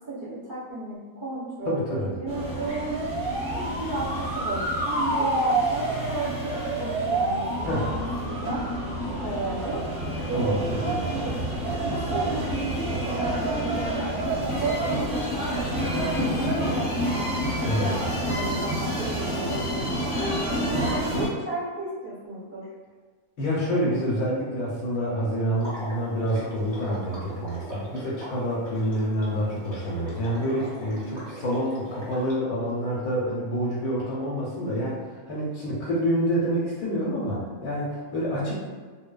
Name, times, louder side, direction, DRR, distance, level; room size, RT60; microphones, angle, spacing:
voice 1, 0.1-3.0 3.5-8.6 9.1-9.8 10.2-11.3 11.8-17.3 17.6-22.7, right 2 dB, 45° right, -10 dB, 0.6 m, -34 dB
voice 2, 1.7-2.1 7.6-7.9 10.3-11.1 17.6-18.0 23.4-38.6, equal, 90° left, -6 dB, 1.1 m, -27 dB
sound 1, 2.3-21.3, right 1 dB, 5° right, 0.5 m, -28 dB
sound 2, 7.6-16.4, right 1 dB, 90° right, 1.1 m, -36 dB
Water / Liquid, 25.6-32.3, equal, 20° left, 0.9 m, -41 dB
2.9 x 2.2 x 2.2 m, 1.5 s
omnidirectional pair, 1.5 m